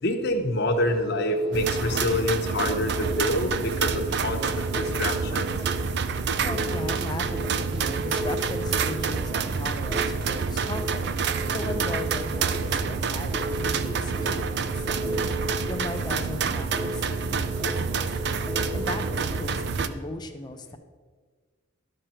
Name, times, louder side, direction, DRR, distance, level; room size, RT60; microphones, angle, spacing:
voice 1, 0.0-5.6, left 1 dB, 55° left, 4 dB, 1.0 m, -27 dB
sound 1, 0.7-20.2, equal, ahead, 1.1 m, -36 dB
sound 2, 1.5-19.9, right 5 dB, 55° right, 0.4 m, -28 dB
voice 2, 6.4-20.8, left 2 dB, 20° left, 5 dB, 0.7 m, -38 dB
12.0 x 6.5 x 4.5 m, 1.5 s
head